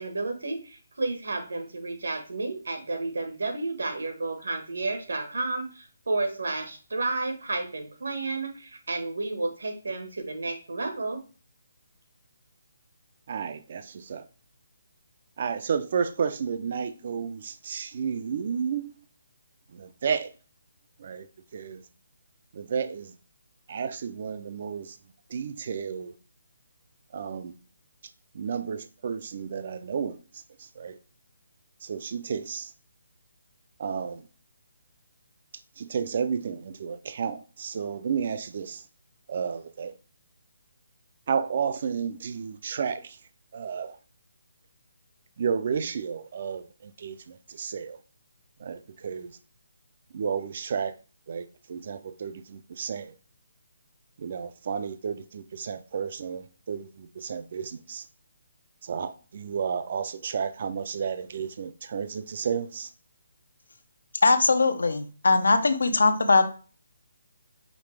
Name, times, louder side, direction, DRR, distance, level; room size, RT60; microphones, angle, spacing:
voice 1, 0.0-11.2, right 3 dB, 85° right, 1.3 m, -31 dB
voice 2, 13.3-14.3 15.4-18.9 19.7-20.3 21.0-21.3 21.5-21.8 22.5-23.1 23.7-25.0 25.3-26.1 27.1-27.5 28.3-31.0 31.8-32.7 33.8-34.3 35.8-38.8 39.3-40.0 41.3-43.2 43.5-44.0 45.4-48.0 48.6-49.4 50.1-51.0 51.3-53.1 54.2-58.1 58.8-62.9, right 6 dB, 40° right, 0.3 m, -32 dB
voice 3, 64.2-66.4, left 3 dB, 85° left, 0.7 m, -21 dB
5.1 x 3.2 x 3.2 m
hypercardioid pair, 175°, 0 cm